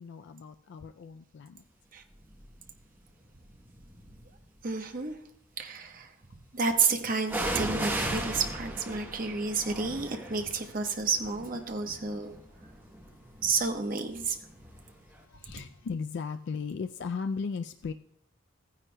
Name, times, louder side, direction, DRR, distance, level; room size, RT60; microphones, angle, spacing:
voice 1, 0.0-1.6 12.3-12.4 13.0-13.3 15.2-17.9, left 5 dB, 60° left, 8 dB, 0.3 m, -37 dB
sound 1, 2.3-2.7 3.4-4.4 7.3-14.9 15.2-15.3, right 1 dB, 10° right, 0.9 m, -37 dB
voice 2, 4.6-5.2 5.6-6.1 6.5-12.4 13.4-14.4, right 4 dB, 45° right, 5 dB, 0.9 m, -30 dB
15.0 x 9.6 x 2.2 m, 0.71 s
head